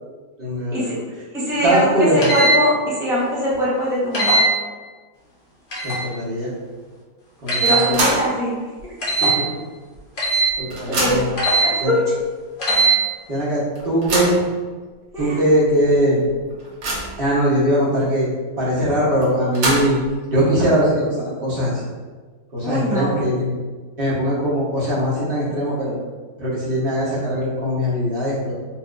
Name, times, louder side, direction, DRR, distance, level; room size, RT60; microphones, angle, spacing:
voice 1, 0.4-1.0 1.6-2.3 5.8-6.5 7.4-8.0 9.1-9.4 10.6-11.2 11.8-12.0 13.3-14.4 15.2-16.2 17.2-18.3 18.6-20.0 20.3-21.8 22.5-23.5 24.0-26.0 26.4-28.5, equal, 45° right, -8 dB, 1.2 m, -21 dB
voice 2, 1.3-2.7 3.0-4.4 7.6-8.6 10.9-12.0 15.1-15.4 22.6-23.1, equal, 5° right, -8 dB, 0.6 m, -22 dB
sound 1, 2.2-2.5 4.1-4.4 5.7-6.0 7.5-7.8 9.0-9.3 10.2-10.5 11.4-11.7 12.6-12.9, right 2 dB, 40° left, 1.0 m, -18 dB
sound 2, 7.6-8.4 8.8-8.9 9.9-10.0 10.3-11.4 12.2-12.3 12.7-12.8 13.7-14.5 15.2-15.3 15.6-15.7 16.2-17.3 19.2-20.1, right 2 dB, 80° right, 1.3 m, -25 dB
4.4 x 2.7 x 2.5 m, 1.4 s
omnidirectional pair, 1.5 m